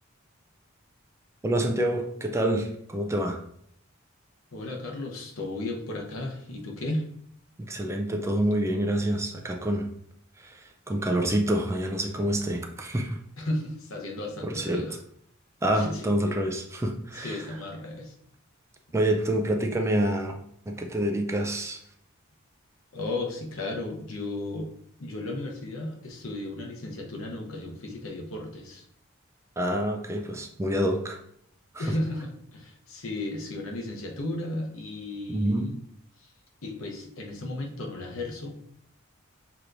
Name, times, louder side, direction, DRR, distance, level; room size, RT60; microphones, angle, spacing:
voice 1, 1.4-3.4 7.6-9.9 10.4-13.2 14.4-14.9 15.6-17.5 18.9-20.4 20.7-21.8 29.6-31.2 31.7-31.9 35.3-35.7, right 1 dB, 15° right, 4 dB, 0.4 m, -27 dB
voice 2, 4.5-7.1 13.4-15.0 15.7-16.1 17.1-18.1 22.9-24.7 25.0-28.8 31.8-35.8 36.2-36.3 36.6-38.6, left 1 dB, 75° left, 1 dB, 0.9 m, -34 dB
6.6 x 2.9 x 2.5 m, 0.69 s
head